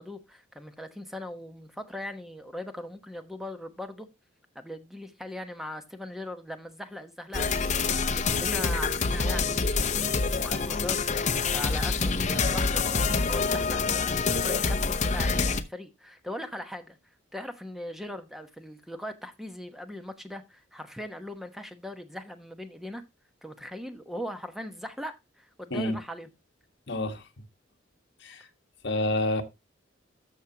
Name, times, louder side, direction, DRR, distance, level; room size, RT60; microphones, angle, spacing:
voice 1, 0.0-4.1 4.5-14.1 14.4-17.0 17.3-23.0 23.4-26.3, left 1 dB, ahead, 1.0 m, -40 dB
sound 1, 7.3-15.6, left 4 dB, 40° left, 0.8 m, -26 dB
voice 2, 26.9-27.2 28.2-28.5 28.8-29.4, left 1 dB, 60° left, 1.5 m, -28 dB
13.0 x 6.3 x 2.8 m
head